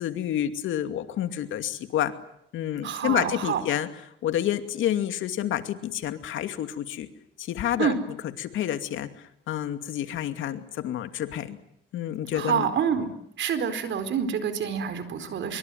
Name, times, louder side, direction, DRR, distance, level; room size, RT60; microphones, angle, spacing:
voice 1, 0.0-2.1 2.5-3.9 4.2-7.1 7.4-7.9 8.4-9.1 9.5-11.6 11.9-12.7, left 11 dB, 80° left, 9 dB, 2.5 m, -29 dB
voice 2, 2.8-3.6 7.8-8.0 12.3-13.1 13.4-15.6, right 7 dB, 70° right, 11 dB, 4.5 m, -27 dB
25.0 x 23.5 x 9.4 m, 0.74 s
cardioid pair, 90°, 20 cm